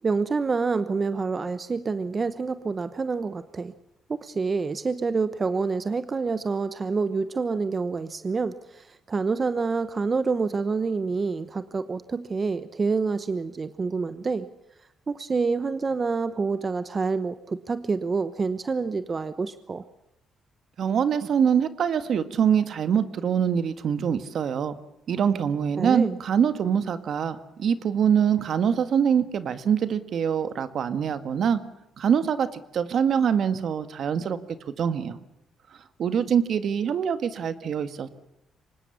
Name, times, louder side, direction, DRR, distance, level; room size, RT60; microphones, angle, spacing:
voice 1, 0.0-3.7 4.1-14.5 15.1-19.8 25.8-26.2, right 4 dB, 35° right, 12 dB, 1.0 m, -27 dB
voice 2, 20.8-24.8 25.1-31.6 32.0-32.5 32.7-34.4 34.8-35.2 36.0-38.1, right 7 dB, 60° right, 11 dB, 1.7 m, -24 dB
24.5 x 20.0 x 7.2 m, 0.87 s
cardioid pair, 90°, 0 cm